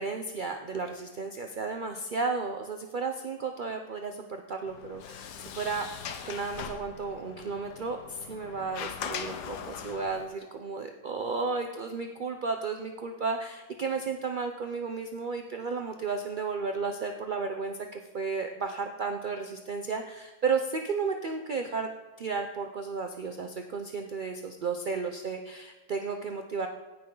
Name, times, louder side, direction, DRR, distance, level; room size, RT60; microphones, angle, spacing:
voice 1, 0.0-5.9 6.3-21.9 22.2-26.7, right 4 dB, 60° right, 5 dB, 0.5 m, -33 dB
Sliding door, 4.7-10.2, left 7 dB, 85° left, 1.4 m, -40 dB
17.0 x 6.2 x 3.9 m, 1.2 s
omnidirectional pair, 1.7 m